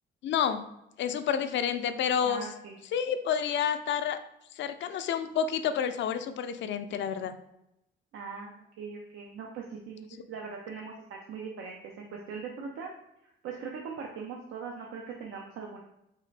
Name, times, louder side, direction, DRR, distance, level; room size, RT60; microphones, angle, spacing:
voice 1, 0.2-0.6 1.0-2.5 2.9-4.2 4.5-7.3, left 8 dB, 65° left, 9 dB, 0.4 m, -29 dB
voice 2, 2.2-2.7 8.1-12.9 13.2-15.8, right 5 dB, 80° right, 0 dB, 0.6 m, -41 dB
4.1 x 3.7 x 3.2 m, 0.84 s
cardioid pair, 110°, 21 cm